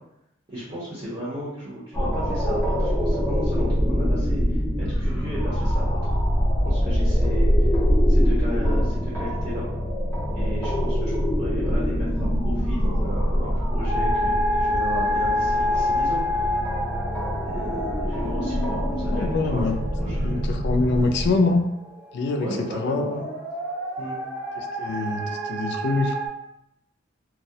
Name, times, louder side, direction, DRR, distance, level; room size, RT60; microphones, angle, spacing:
voice 1, 0.5-6.2 6.6-7.5 8.1-9.7 10.3-14.3 14.6-16.2 17.4-19.7 20.0-20.5 20.9-21.0 22.4-23.3 24.0-24.2, equal, 30° right, -10 dB, 0.7 m, -35 dB
sound 1, 1.9-21.3, equal, 10° left, 0.5 m, -24 dB
sound 2, 13.8-26.3, left 1 dB, 70° right, 1.3 m, -29 dB
voice 2, 19.1-19.7 20.2-21.6 22.1-23.2 24.6-26.1, left 3 dB, 60° left, 4 dB, 0.3 m, -24 dB
2.3 x 2.0 x 2.7 m, 0.82 s
head